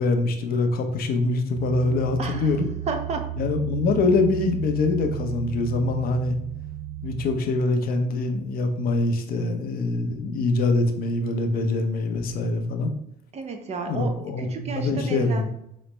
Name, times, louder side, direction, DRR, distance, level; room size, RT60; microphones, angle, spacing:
voice 1, 0.0-2.6 3.4-6.3 7.0-12.9 13.9-15.5, left 3 dB, 60° left, 5 dB, 0.7 m, -24 dB
sound 1, 1.6-7.4, right 12 dB, 85° right, 0.4 m, -34 dB
voice 2, 2.2-2.6 2.9-3.3 13.3-15.5, right 4 dB, 40° right, 6 dB, 0.7 m, -32 dB
3.9 x 3.1 x 3.2 m, 0.77 s
cardioid pair, 110°, 17 cm